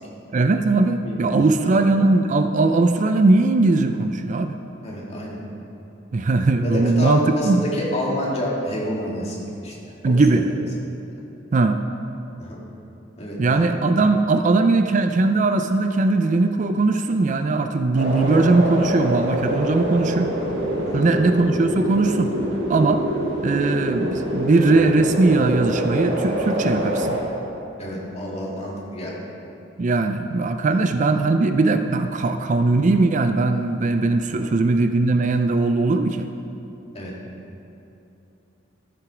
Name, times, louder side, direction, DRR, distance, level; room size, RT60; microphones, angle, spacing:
voice 1, 0.3-4.6 6.1-7.7 10.0-10.5 11.5-11.8 13.4-20.3 20.9-22.3 22.7-23.1 23.4-27.2 29.8-36.3, right 3 dB, 40° right, 8 dB, 0.4 m, -19 dB
voice 2, 1.0-1.8 4.8-5.4 6.6-9.4 9.6-9.7 10.1-10.5 12.4-12.6 13.2-13.6 20.8-21.1 27.8-29.2 30.7-30.8 34.3-34.5 36.9-37.1, equal, 35° left, -4 dB, 2.1 m, -29 dB
sound 1, 17.9-27.2, equal, 60° right, 2.0 m, -25 dB
13.0 x 7.9 x 4.9 m, 2.8 s
head